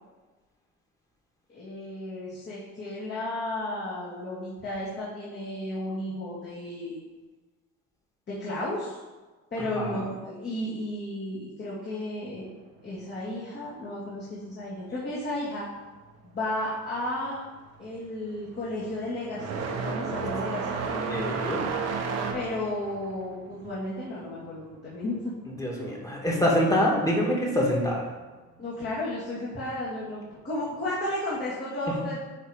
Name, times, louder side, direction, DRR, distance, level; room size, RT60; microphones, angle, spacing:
voice 1, 1.5-7.0 8.3-9.0 9.5-12.5 12.8-15.7 16.2-17.4 17.8-21.0 22.3-25.3 28.6-32.2, left 1 dB, 35° left, -9 dB, 2.2 m, -33 dB
sound 1, 16.8-17.1 17.4-25.8 26.0-27.1 28.1-28.2 29.0-29.1 30.8-31.0, right 5 dB, 55° right, 1.1 m, -33 dB
voice 2, 21.1-21.6 25.6-28.0 31.9-32.0, equal, 10° left, -3 dB, 1.9 m, -25 dB
9.7 x 3.3 x 4.9 m, 1.3 s
cardioid pair, 115°, 30 cm